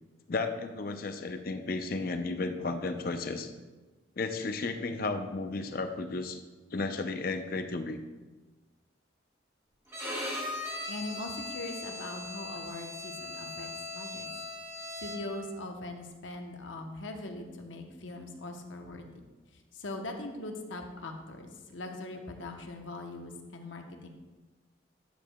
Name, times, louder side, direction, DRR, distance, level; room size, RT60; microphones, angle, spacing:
voice 1, 0.3-3.5 4.2-6.4 6.7-8.0, left 3 dB, 45° left, 7 dB, 0.5 m, -33 dB
Bowed string instrument, 9.9-15.5, left 2 dB, 15° right, 1.5 m, -39 dB
voice 2, 10.9-14.3 15.0-19.0 19.5-24.1, left 2 dB, 75° left, 4 dB, 0.8 m, -41 dB
10.5 x 6.5 x 2.2 m, 1.2 s
head